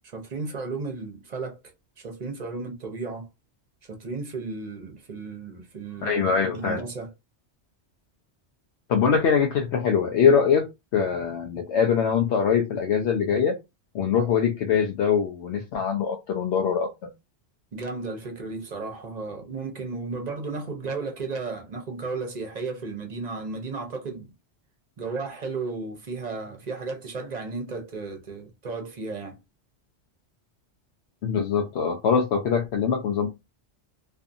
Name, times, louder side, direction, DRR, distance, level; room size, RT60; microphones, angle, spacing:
voice 1, 0.0-1.6 2.0-3.3 3.8-7.1 17.7-24.3 25.0-29.4, right 3 dB, 45° right, 0.7 m, -34 dB
voice 2, 6.0-6.8 8.9-10.7 10.9-13.6 13.9-16.9 31.2-33.3, left 6 dB, 75° left, 0.8 m, -23 dB
2.5 x 2.5 x 2.5 m
omnidirectional pair, 1.2 m